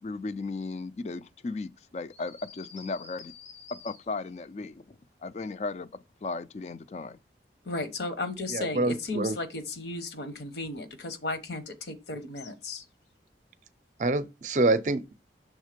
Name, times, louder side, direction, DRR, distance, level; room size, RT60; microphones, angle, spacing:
voice 1, 0.0-3.3 3.7-5.9 6.2-7.2, left 3 dB, 40° left, 0.3 m, -36 dB
sound 1, 2.1-4.4 12.3-13.1, left 6 dB, 90° left, 1.2 m, -49 dB
voice 2, 7.6-12.8, left 2 dB, 70° left, 1.0 m, -34 dB
voice 3, 8.5-9.4 14.0-15.1, right 2 dB, 45° right, 0.5 m, -26 dB
6.3 x 3.6 x 5.0 m
head